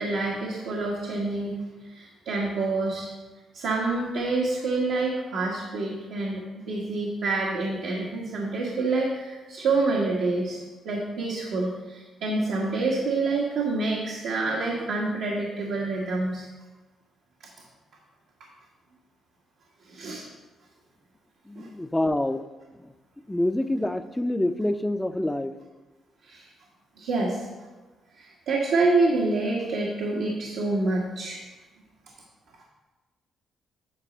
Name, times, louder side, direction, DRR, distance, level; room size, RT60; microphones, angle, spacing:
voice 1, 0.0-1.5 1.8-3.1 3.5-10.6 10.8-16.5 19.9-20.2 21.5-21.7 26.2-26.5 27.0-27.5 28.2-31.4, right 3 dB, 85° right, -4 dB, 1.5 m, -27 dB
voice 2, 21.5-22.4 22.8-22.9 23.3-25.5, left 1 dB, 10° left, 10 dB, 0.5 m, -26 dB
9.2 x 4.1 x 7.3 m, 1.2 s
cardioid pair, 90°, 0 cm